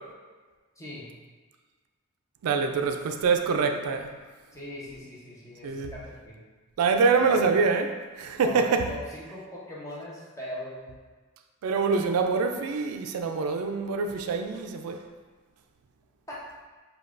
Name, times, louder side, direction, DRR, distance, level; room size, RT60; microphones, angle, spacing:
voice 1, 0.8-1.1 4.5-6.4 7.2-7.4 8.3-10.9 16.3-16.4, left 1 dB, 15° left, -6 dB, 0.7 m, -40 dB
voice 2, 2.4-4.1 5.6-5.9 6.8-8.9 11.6-15.0, right 4 dB, 85° right, 6 dB, 0.3 m, -25 dB
5.2 x 2.3 x 2.4 m, 1.4 s
head